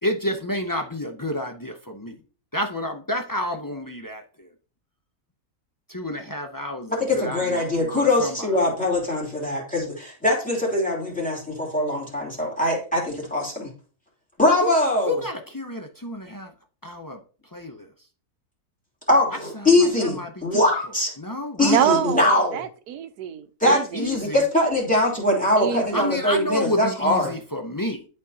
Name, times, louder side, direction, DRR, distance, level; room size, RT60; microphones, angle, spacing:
voice 1, 0.0-2.2 2.5-4.5 5.9-7.6 7.9-8.5 14.6-14.8 15.0-16.5 16.8-17.2 17.5-17.9 19.5-20.6 21.2-21.9 23.6-24.5 25.9-28.1, left 1 dB, 35° left, 4 dB, 0.3 m, -30 dB
voice 2, 6.9-13.7 14.4-15.2 19.1-21.1 21.6-22.6 23.6-27.3, left 1 dB, 5° left, -4 dB, 2.7 m, -22 dB
voice 3, 21.6-24.0 25.6-26.1, right 10 dB, 85° right, 11 dB, 1.3 m, -26 dB
11.0 x 4.4 x 2.8 m, 0.38 s
omnidirectional pair, 1.6 m